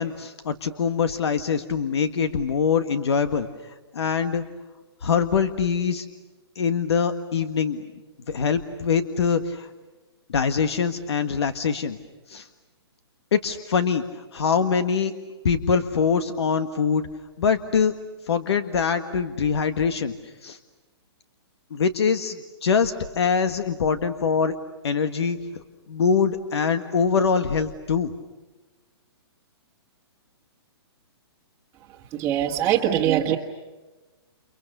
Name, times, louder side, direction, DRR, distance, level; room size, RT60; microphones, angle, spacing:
voice 1, 0.0-4.4 5.0-6.1 6.5-7.8 8.3-9.7 10.3-12.0 12.3-12.5 13.3-14.0 14.3-15.1 15.4-17.1 17.4-17.9 18.3-20.1 20.4-20.6 21.7-24.5 24.8-25.6 25.9-28.1, left 6 dB, 75° left, 9 dB, 1.7 m, -23 dB
voice 2, 31.9-33.4, right 11 dB, 20° right, -2 dB, 1.5 m, -23 dB
30.0 x 29.5 x 6.8 m, 1.2 s
hypercardioid pair, 160°, 14 cm